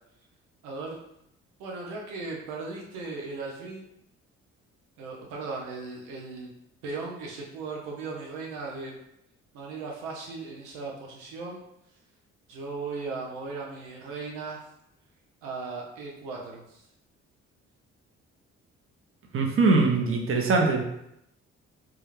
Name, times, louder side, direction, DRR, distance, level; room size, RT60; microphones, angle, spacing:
voice 1, 0.6-1.0 1.6-3.9 5.0-6.5 6.8-9.0 9.5-11.6 12.5-14.6 15.4-16.8, right 3 dB, 90° right, -1 dB, 0.5 m, -37 dB
voice 2, 19.3-20.8, right 3 dB, 45° right, 1 dB, 0.7 m, -22 dB
2.3 x 2.1 x 3.1 m, 0.79 s
supercardioid pair, 65°, 29 cm